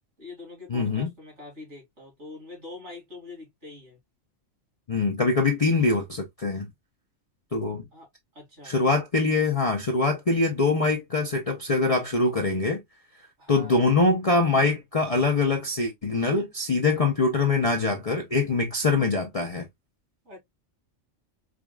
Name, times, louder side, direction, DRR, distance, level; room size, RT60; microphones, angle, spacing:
voice 1, 0.2-4.0 7.9-8.1 8.3-8.7 13.4-13.9 20.2-20.4, left 3 dB, 65° right, 2.8 m, -44 dB
voice 2, 0.7-1.1 4.9-6.7 7.5-7.8 8.6-12.8 13.5-19.7, left 3 dB, 40° left, 0.6 m, -23 dB
5.0 x 2.4 x 2.3 m
omnidirectional pair, 1.3 m